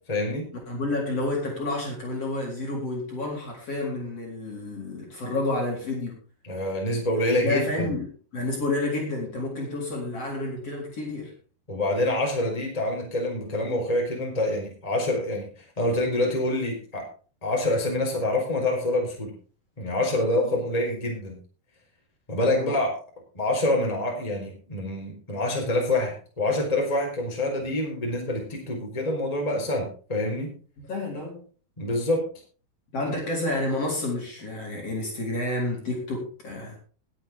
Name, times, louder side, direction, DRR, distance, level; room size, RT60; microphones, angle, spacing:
voice 1, 0.1-0.5 6.4-7.9 11.7-17.1 17.4-19.3 19.8-21.4 22.3-22.9 23.3-30.5 31.8-32.3, left 1 dB, 10° left, 0 dB, 4.1 m, -26 dB
voice 2, 0.7-6.2 7.3-8.0 8.3-11.3 20.4-20.6 22.5-22.7 30.9-31.4 32.9-36.8, left 2 dB, 40° left, -1 dB, 4.7 m, -30 dB
20.5 x 8.6 x 3.7 m, 0.39 s
omnidirectional pair, 4.6 m